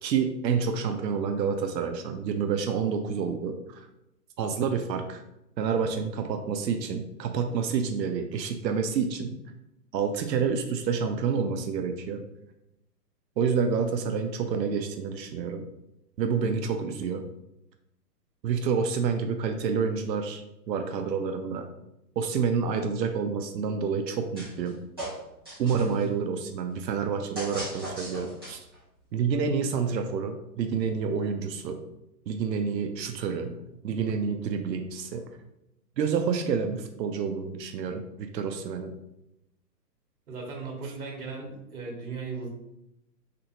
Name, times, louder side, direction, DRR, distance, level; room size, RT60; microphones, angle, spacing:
voice 1, 0.0-3.9 4.4-5.2 5.6-9.4 9.9-12.2 13.4-15.7 16.2-17.3 18.4-20.4 20.7-21.7 22.2-24.8 25.6-28.6 29.1-31.8 32.3-33.6 33.8-35.3 36.0-39.0, right 6 dB, 85° right, 6 dB, 0.6 m, -28 dB
sound 1, 24.3-24.7 25.0-26.0 27.3-28.8, right 1 dB, 15° right, 0.5 m, -38 dB
voice 2, 40.3-42.5, right 4 dB, 60° right, -1 dB, 1.3 m, -37 dB
3.3 x 2.6 x 2.9 m, 0.86 s
hypercardioid pair, 170°, 50 cm